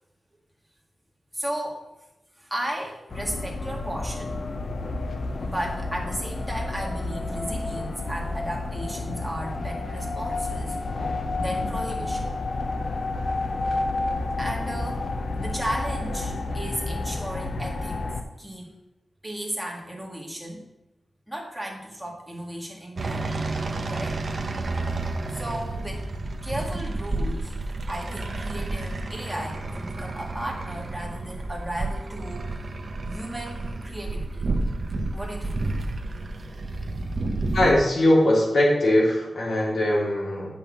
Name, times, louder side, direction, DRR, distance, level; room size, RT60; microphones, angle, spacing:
voice 1, 1.3-1.8 2.4-4.4 5.5-10.8 11.4-12.3 14.4-15.1 15.4-18.0 18.4-18.7 19.2-20.6 21.3-23.3 23.9-24.2 25.3-26.0 26.4-27.5 27.9-32.5 33.1-34.4 35.1-35.6, right 1 dB, 5° right, -1 dB, 2.0 m, -34 dB
sound 1, 3.1-18.2, left 2 dB, 55° left, 0.9 m, -30 dB
sound 2, 23.0-37.7, right 2 dB, 45° right, 0.9 m, -30 dB
voice 2, 37.5-40.5, left 1 dB, 75° left, -4 dB, 3.4 m, -20 dB
8.6 x 5.7 x 7.2 m, 0.94 s
wide cardioid pair, 155°, 0 cm